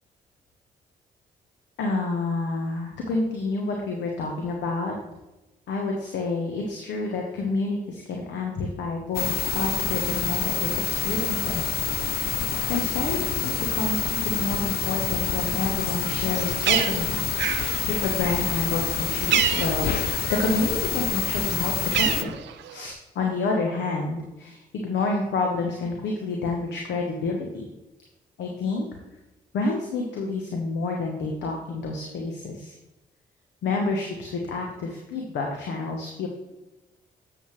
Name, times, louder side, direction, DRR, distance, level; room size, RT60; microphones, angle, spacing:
voice 1, 1.8-4.9 5.7-17.3 17.9-22.3 22.7-27.6 28.4-28.9 29.5-32.7 33.6-36.3, left 3 dB, 75° left, 1 dB, 1.1 m, -29 dB
sound 1, 9.1-22.2, left 9 dB, 55° left, 0.4 m, -27 dB
Bird, 16.1-20.7 21.0-22.9, right 10 dB, 75° right, 0.5 m, -29 dB
7.9 x 7.2 x 3.2 m, 1.0 s
supercardioid pair, 50°, 19 cm